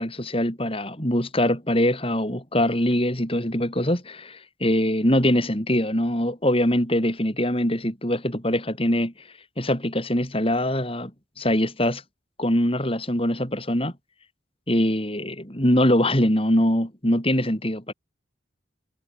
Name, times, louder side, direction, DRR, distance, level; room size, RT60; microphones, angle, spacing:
voice 1, 0.0-9.1 9.6-11.1 11.4-12.0 12.4-13.9 14.7-17.9, left 1 dB, 30° left, 6.1 m, -23 dB
head